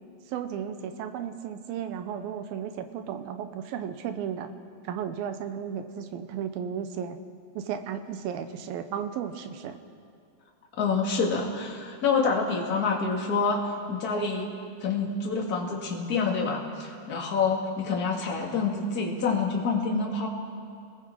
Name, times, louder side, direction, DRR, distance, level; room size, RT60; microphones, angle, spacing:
voice 1, 0.3-4.5 4.8-7.2 7.6-9.8, right 8 dB, 90° right, 9 dB, 2.8 m, -34 dB
voice 2, 10.8-14.5 14.8-20.3, left 4 dB, 30° left, -1 dB, 2.1 m, -27 dB
28.5 x 20.0 x 4.8 m, 2.4 s
omnidirectional pair, 4.1 m